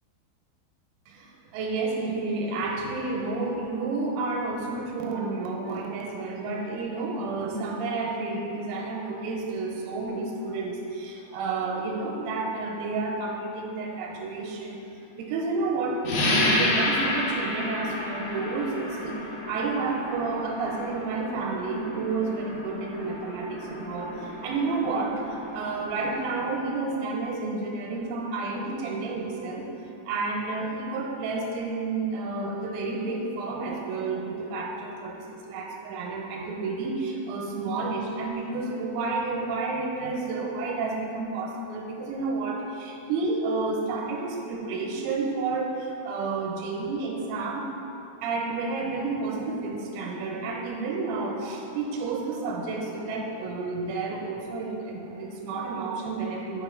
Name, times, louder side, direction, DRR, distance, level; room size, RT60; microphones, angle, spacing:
voice 1, 1.1-14.8 15.2-19.2 19.5-29.7 30.1-47.6 48.2-56.6, right 3 dB, 85° right, 0 dB, 3.5 m, -30 dB
sound 1, 16.0-26.3, left 1 dB, 75° left, 3.3 m, -31 dB
9.0 x 4.9 x 3.7 m, 3.0 s
omnidirectional pair, 5.9 m